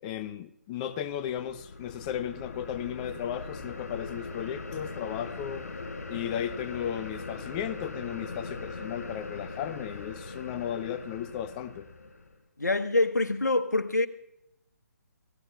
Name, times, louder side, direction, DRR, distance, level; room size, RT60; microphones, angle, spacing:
voice 1, 0.0-5.7 6.1-11.9, left 10 dB, 25° left, 0.5 m, -35 dB
sound 1, 0.9-12.3, left 3 dB, 70° left, 5.0 m, -40 dB
voice 2, 12.6-14.1, left 2 dB, 85° left, 1.2 m, -25 dB
29.0 x 16.0 x 2.4 m
figure-of-eight pair, 140°, 9 cm